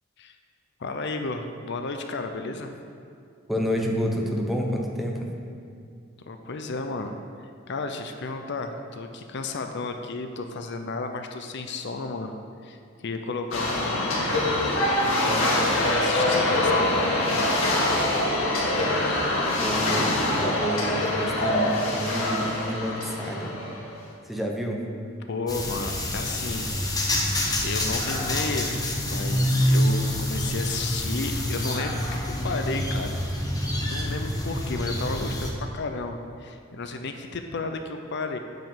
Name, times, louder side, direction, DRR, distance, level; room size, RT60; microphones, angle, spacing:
voice 1, 0.8-2.7 6.2-7.2 7.7-12.4 12.6-14.1 14.6-18.0 25.2-26.7 27.0-27.3 27.6-33.2 33.8-38.4, left 3 dB, 60° left, 6 dB, 0.6 m, -33 dB
voice 2, 3.5-5.3 19.6-23.6 24.2-24.8, equal, ahead, 0 dB, 1.0 m, -29 dB
sound 1, 13.5-23.9, left 1 dB, 85° left, 2.3 m, -24 dB
sound 2, 25.5-35.5, left 1 dB, 20° left, 1.2 m, -27 dB
9.2 x 5.1 x 7.4 m, 2.5 s
head